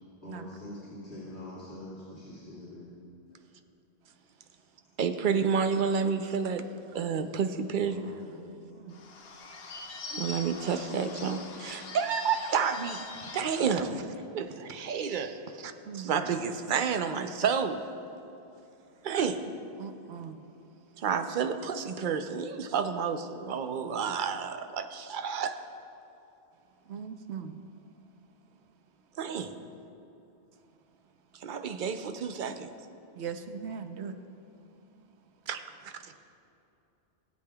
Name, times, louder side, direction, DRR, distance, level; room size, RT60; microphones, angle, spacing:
voice 1, 0.2-3.0 7.8-8.6, left 1 dB, 85° left, -11 dB, 2.6 m, -44 dB
voice 2, 5.0-6.7 6.9-8.2 10.1-13.0 13.3-14.0 14.3-17.8 19.0-19.4 21.0-25.6 29.2-29.5 31.4-32.7 35.5-36.2, right 6 dB, 55° right, 8 dB, 0.7 m, -30 dB
Bird / Bell, 8.9-13.9, left 3 dB, 65° left, 1.1 m, -43 dB
voice 3, 19.8-20.4 26.9-27.6 33.1-34.1, right 7 dB, 80° right, 7 dB, 1.0 m, -39 dB
19.0 x 8.4 x 2.3 m, 2.8 s
omnidirectional pair, 1.1 m